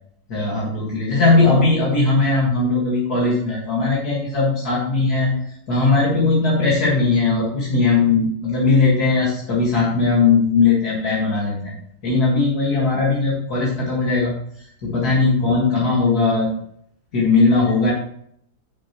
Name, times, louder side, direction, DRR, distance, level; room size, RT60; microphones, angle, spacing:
voice 1, 0.3-5.4 5.7-11.8 12.0-14.3 14.8-16.5 17.1-17.9, left 3 dB, 65° left, -5 dB, 2.5 m, -18 dB
11.0 x 6.7 x 3.0 m, 0.67 s
omnidirectional pair, 1.8 m